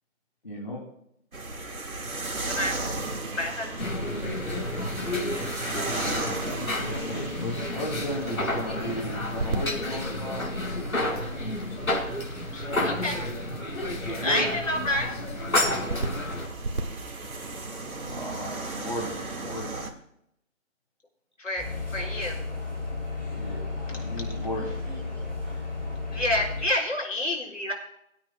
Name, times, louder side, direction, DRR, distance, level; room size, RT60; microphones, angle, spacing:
voice 1, 0.4-0.8 6.5-10.8 13.9-14.5 18.0-19.1 19.4-19.7 23.3-24.7 25.5-25.7, equal, 35° left, -5 dB, 2.6 m, -35 dB
sound 1, 1.3-19.9, right 2 dB, 85° right, 1.9 m, -36 dB
voice 2, 3.3-3.9 12.5-13.2 14.2-15.2 21.4-21.6 21.9-22.4 26.1-27.7, left 1 dB, 65° left, -2 dB, 5.0 m, -28 dB
sound 2, 3.8-16.5, left 1 dB, 85° left, 5.0 m, -31 dB
sound 3, 21.6-26.6, left 3 dB, 10° left, 4.0 m, -33 dB
voice 3, 23.8-25.6, right 2 dB, 15° right, -8 dB, 4.6 m, -49 dB
23.5 x 8.9 x 2.3 m, 0.76 s
figure-of-eight pair, 180°, 41 cm